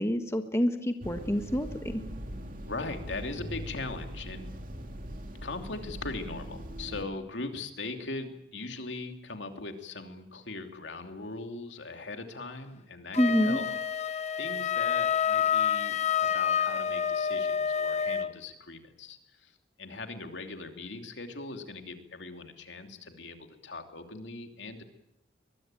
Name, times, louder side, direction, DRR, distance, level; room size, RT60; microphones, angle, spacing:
voice 1, 0.0-2.0 13.2-13.6, equal, 15° left, 6 dB, 1.5 m, -27 dB
sound 1, 1.0-7.0, equal, 50° right, 2.6 m, -41 dB
voice 2, 2.6-4.5 5.4-13.7 14.4-19.5 19.8-24.8, left 3 dB, 70° left, 5 dB, 2.9 m, -40 dB
Wind instrument woodwind instrument, 13.1-18.3, left 8 dB, 35° left, 0.9 m, -28 dB
23.0 x 22.0 x 9.0 m, 0.84 s
head